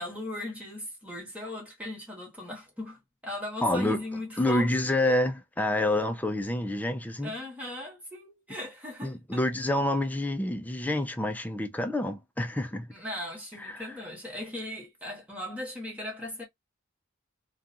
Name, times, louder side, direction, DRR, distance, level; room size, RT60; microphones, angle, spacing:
voice 1, 0.0-4.7 5.0-5.1 7.2-9.4 12.9-16.4, left 1 dB, 5° right, 1.2 m, -38 dB
voice 2, 3.6-4.0 4.4-7.3 9.0-12.9 13.6-13.9, left 1 dB, 10° left, 0.4 m, -28 dB
2.5 x 2.3 x 2.6 m
head